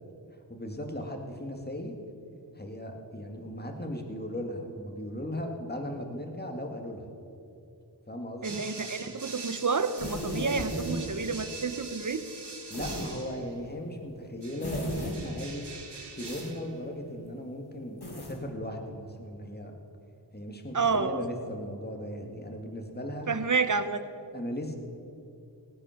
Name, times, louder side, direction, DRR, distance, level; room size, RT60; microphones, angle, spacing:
voice 1, 0.5-1.9 2.6-7.1 8.1-8.6 10.3-10.6 12.7-15.7 16.1-19.8 20.3-23.3 24.3-24.7, equal, 20° left, 3 dB, 1.9 m, -37 dB
voice 2, 8.4-12.2 20.7-21.3 23.3-24.0, right 4 dB, 45° right, 11 dB, 0.9 m, -29 dB
sound 1, 8.4-13.6 14.4-16.8, right 4 dB, 65° right, 1.5 m, -44 dB
sound 2, 10.0-11.0 12.7-13.1 14.6-15.2 16.2-16.5 18.0-18.4, equal, 60° left, 2.8 m, -35 dB
17.5 x 8.8 x 5.8 m, 2.7 s
wide cardioid pair, 45°, 44 cm